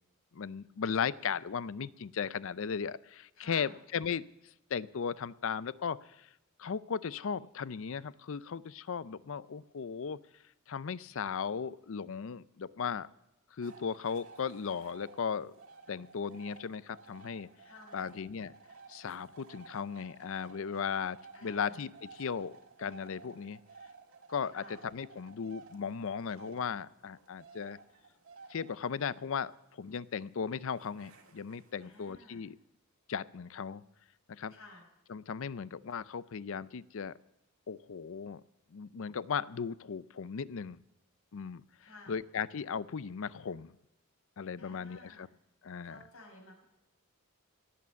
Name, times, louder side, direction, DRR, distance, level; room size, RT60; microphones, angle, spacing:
voice 1, 0.3-6.3 6.6-10.2 10.7-13.1 13.5-15.6 15.9-17.5 17.9-18.5 18.9-21.2 21.4-23.6 24.3-27.8 28.5-32.6 33.1-33.8 34.3-34.5 35.1-37.1 37.7-38.4 38.7-40.8 41.3-41.6 42.1-43.8 44.4-45.3 45.6-46.0, left 6 dB, 65° left, 18 dB, 0.5 m, -37 dB
voice 2, 3.4-3.8 17.7-18.2 21.3-21.8 24.5-24.8 31.8-32.4 34.5-34.8 41.8-42.2 44.6-45.3 45.8-46.6, left 2 dB, 80° left, 1 dB, 5.2 m, -54 dB
sound 1, 13.6-32.1, right 4 dB, 65° right, 1.9 m, -55 dB
17.0 x 8.6 x 7.0 m, 0.89 s
head